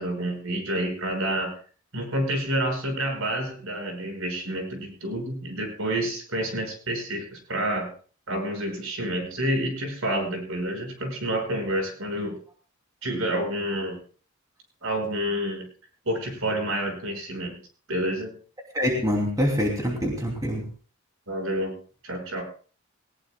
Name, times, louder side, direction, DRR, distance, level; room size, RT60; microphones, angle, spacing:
voice 1, 0.0-1.6 1.9-7.9 8.3-12.4 13.0-14.0 14.8-15.6 16.1-17.6 17.9-18.3 21.3-21.8 22.0-22.4, right 1 dB, 70° right, 4 dB, 5.9 m, -29 dB
voice 2, 18.7-20.6, equal, 15° right, 0 dB, 2.9 m, -25 dB
20.0 x 19.5 x 2.3 m, 0.40 s
head